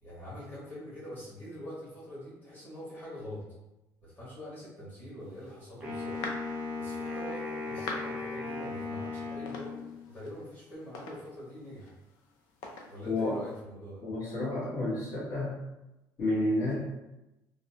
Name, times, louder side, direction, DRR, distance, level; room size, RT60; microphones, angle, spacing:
voice 1, 0.0-3.4 4.0-6.2 6.8-11.9 12.8-14.0, equal, 25° left, -10 dB, 1.3 m, -44 dB
sound 1, 5.2-13.6, left 3 dB, 90° left, 0.5 m, -46 dB
Wind instrument woodwind instrument, 5.8-10.0, left 3 dB, 15° right, 0.6 m, -37 dB
voice 2, 13.0-13.4 14.0-15.5 16.2-16.7, left 2 dB, 60° left, -9 dB, 1.0 m, -30 dB
2.7 x 2.1 x 2.7 m, 0.96 s
cardioid pair, 165°, 7 cm